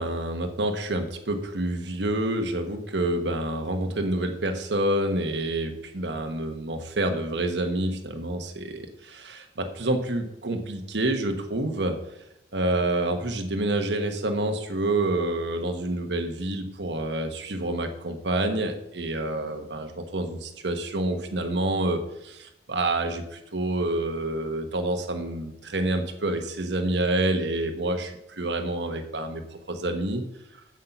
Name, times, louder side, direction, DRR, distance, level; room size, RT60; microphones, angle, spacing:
voice 1, 0.0-12.0 12.5-29.4 29.7-30.2, right 1 dB, 80° right, 5 dB, 1.2 m, -28 dB
8.0 x 7.3 x 5.9 m, 0.83 s
head